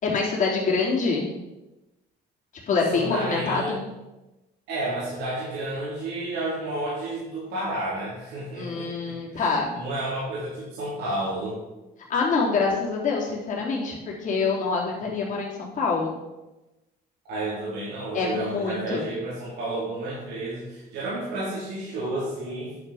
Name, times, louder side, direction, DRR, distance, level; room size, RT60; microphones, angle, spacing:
voice 1, 0.0-1.3 2.7-3.9 8.5-9.7 12.1-16.2 18.1-19.1, left 4 dB, 50° left, -3 dB, 3.4 m, -25 dB
voice 2, 2.9-3.7 4.7-11.6 17.3-22.7, right 2 dB, 85° right, -9 dB, 4.0 m, -31 dB
10.5 x 5.9 x 5.9 m, 1.0 s
cardioid pair, 110°, 17 cm